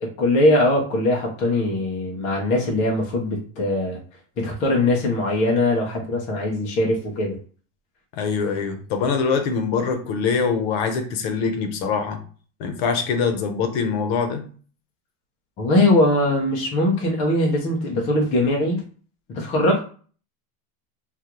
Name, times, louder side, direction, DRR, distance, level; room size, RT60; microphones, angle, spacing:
voice 1, 0.0-4.0 4.4-7.4 15.6-18.8 19.3-19.8, left 1 dB, 20° left, -1 dB, 0.3 m, -21 dB
voice 2, 8.1-12.2 12.6-14.4, left 5 dB, 50° left, 7 dB, 0.7 m, -23 dB
3.6 x 2.3 x 2.9 m, 0.41 s
supercardioid pair, 160°, 41 cm